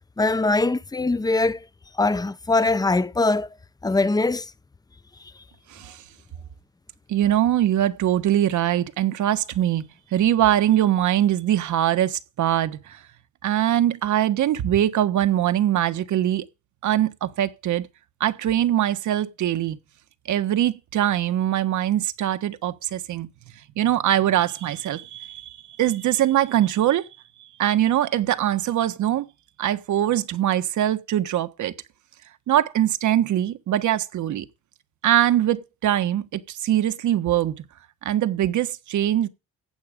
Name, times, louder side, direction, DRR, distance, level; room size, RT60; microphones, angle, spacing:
voice 1, 0.2-1.6 2.0-3.5 3.8-4.5, left 3 dB, 15° left, 0.7 m, -22 dB
voice 2, 5.7-6.0 7.1-13.0 13.4-16.4 16.8-17.9 18.2-19.8 20.3-23.3 23.8-27.1 27.6-29.3 29.6-31.7 32.5-34.4 35.0-37.6 38.0-39.3, right 12 dB, 75° right, 1.4 m, -22 dB
15.0 x 8.7 x 5.2 m
cardioid pair, 90°, 30 cm